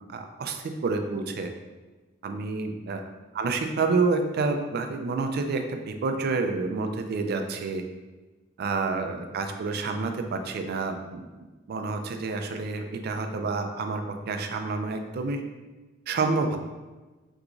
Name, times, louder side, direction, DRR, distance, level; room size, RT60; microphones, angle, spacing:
voice 1, 0.1-1.5 2.2-3.0 3.3-7.8 8.6-11.3 11.7-15.4 16.1-16.6, right 4 dB, 55° right, 5 dB, 0.3 m, -28 dB
3.6 x 2.9 x 2.4 m, 1.2 s
head